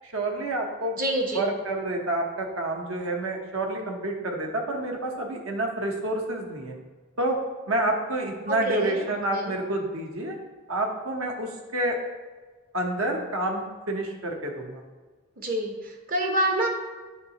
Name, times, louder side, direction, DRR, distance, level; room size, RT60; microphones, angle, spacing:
voice 1, 0.0-0.9 1.3-6.7 7.2-7.4 7.7-10.4 10.7-12.0 12.7-14.8, right 1 dB, 70° right, 2 dB, 0.9 m, -28 dB
voice 2, 1.0-1.5 8.5-9.0 9.3-9.5 15.4-16.7, right 1 dB, 45° right, 2 dB, 0.9 m, -27 dB
9.7 x 3.7 x 2.9 m, 1.3 s
head